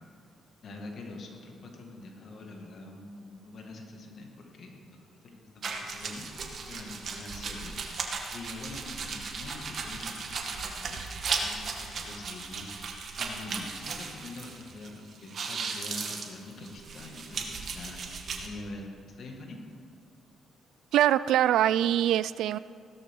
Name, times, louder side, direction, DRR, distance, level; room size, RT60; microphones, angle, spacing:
voice 1, 0.6-8.0 8.3-19.6, left 2 dB, 60° left, 1 dB, 2.2 m, -45 dB
sound 1, 5.6-14.9 15.1-18.5, right 4 dB, 55° right, 1.9 m, -36 dB
voice 2, 20.9-22.6, right 11 dB, 80° right, 16 dB, 0.3 m, -23 dB
16.5 x 13.0 x 3.9 m, 2.3 s
cardioid pair, 90°, 0 cm